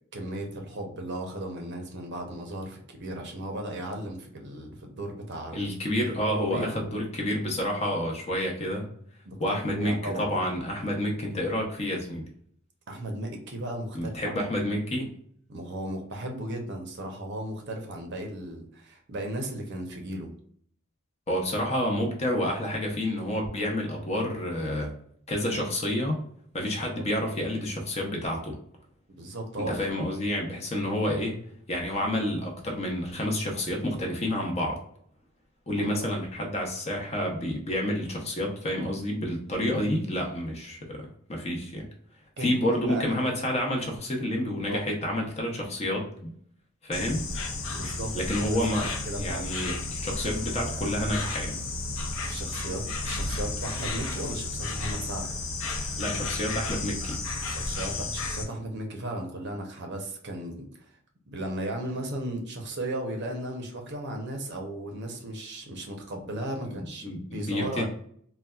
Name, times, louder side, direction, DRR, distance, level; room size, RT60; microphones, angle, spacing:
voice 1, 0.1-5.6 6.3-6.8 9.2-10.3 12.9-14.4 15.5-20.3 26.9-27.0 29.1-30.0 35.8-36.0 42.4-43.3 44.7-44.8 47.7-48.2 48.5-49.6 52.3-55.3 57.5-60.9 61.3-67.9, right 1 dB, 55° right, 2 dB, 0.7 m, -36 dB
voice 2, 5.5-8.9 9.4-12.2 13.9-15.1 21.3-24.9 25.3-26.2 26.5-28.6 29.7-31.4 31.7-34.8 35.7-41.9 42.4-46.1 46.8-47.2 48.1-48.9 49.2-51.6 56.0-57.2 66.6-67.9, left 1 dB, 30° left, 0 dB, 0.7 m, -29 dB
Insect, 46.9-58.4, left 2 dB, 70° left, 0.7 m, -32 dB
4.0 x 2.2 x 2.3 m, 0.62 s
head